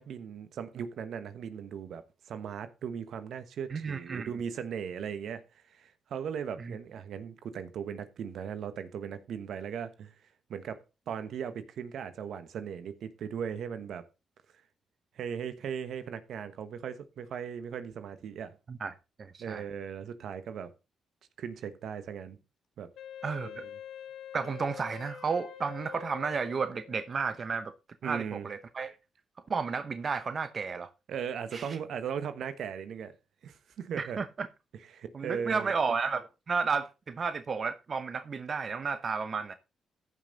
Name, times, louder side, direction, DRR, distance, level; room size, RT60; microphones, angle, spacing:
voice 1, 0.0-2.0 2.3-5.4 5.7-10.1 10.5-14.0 15.2-18.5 19.4-20.7 21.4-22.4 22.8-22.9 23.4-23.6 28.0-28.5 31.1-33.1 33.4-34.2 34.9-35.7, right 7 dB, 70° right, 1.2 m, -38 dB
voice 2, 3.7-4.3 6.6-6.8 18.7-19.6 23.2-23.6 24.3-27.7 28.0-29.0 29.5-30.9 31.5-31.8 34.0-34.5 35.1-39.5, right 5 dB, 50° right, 0.9 m, -32 dB
Wind instrument woodwind instrument, 23.0-27.2, left 9 dB, 75° left, 1.3 m, -45 dB
14.5 x 5.8 x 3.9 m
supercardioid pair, 55°, 0 cm